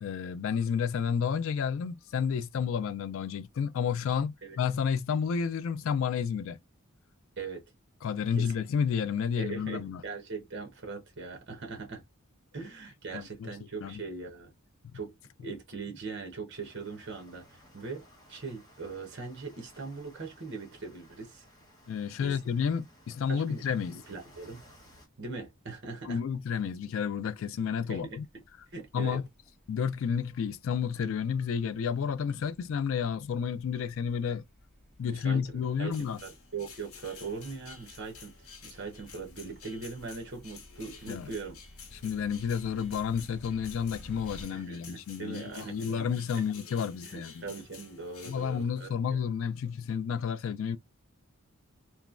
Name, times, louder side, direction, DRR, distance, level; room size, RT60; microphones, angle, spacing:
voice 1, 0.0-6.6 8.0-10.0 13.1-13.5 13.8-14.0 21.9-24.0 26.0-28.2 28.9-29.2 29.7-34.4 35.0-36.2 41.1-41.3 41.9-47.5 48.3-50.8, left 7 dB, 65° left, 0.3 m, -31 dB
voice 2, 9.4-12.0 12.5-14.5 14.9-15.1 15.4-18.0 18.3-21.4 22.2-22.4 23.3-23.6 23.9-24.6 25.2-26.2 27.9-28.2 28.7-29.2 35.1-41.6 44.5-46.1 46.3-46.4 47.0-49.2, right 4 dB, 55° right, 0.9 m, -40 dB
sound 1, 16.5-25.1, equal, 15° left, 0.9 m, -58 dB
sound 2, 28.1-44.4, equal, 5° right, 1.6 m, -55 dB
sound 3, 35.9-48.6, left 6 dB, 80° left, 0.8 m, -51 dB
3.0 x 2.2 x 2.4 m
head